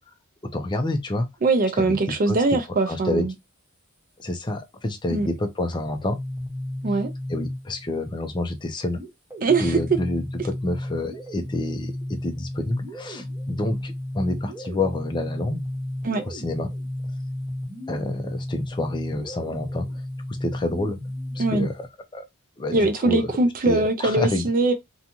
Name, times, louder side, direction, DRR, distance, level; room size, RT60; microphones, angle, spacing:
voice 1, 0.4-1.3 1.8-2.6 2.9-3.3 4.2-6.2 7.3-9.0 9.6-15.6 16.2-16.7 17.9-19.9 20.4-21.0 21.3-21.9 22.1-22.3 22.6-23.3 23.7-24.5, left 2 dB, 20° left, 0.5 m, -28 dB
voice 2, 1.4-3.3 5.1-5.3 6.8-7.1 9.4-9.8 16.0-16.2 21.4-21.7 22.7-24.7, right 3 dB, 40° right, 0.4 m, -22 dB
sound 1, 5.8-8.0 8.9-21.9, left 1 dB, 10° right, 1.1 m, -33 dB
2.6 x 2.3 x 2.7 m
head